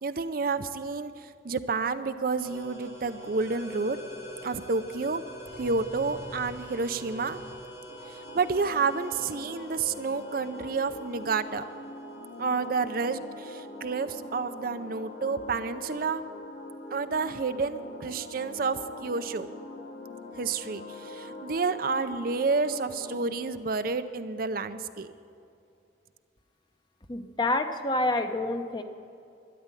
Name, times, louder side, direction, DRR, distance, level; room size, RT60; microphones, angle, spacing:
voice 1, 0.0-4.0 4.4-5.2 5.6-7.4 8.1-11.6 12.4-16.2 16.9-19.5 20.4-25.1, right 4 dB, 55° right, 11 dB, 0.6 m, -30 dB
sound 1, 2.4-13.8, right 1 dB, 80° left, 5.2 m, -45 dB
sound 2, 7.9-23.3, left 2 dB, 60° left, 1.5 m, -43 dB
voice 2, 27.1-28.8, left 2 dB, 25° left, 8 dB, 0.8 m, -28 dB
12.5 x 11.0 x 9.8 m, 2.5 s
head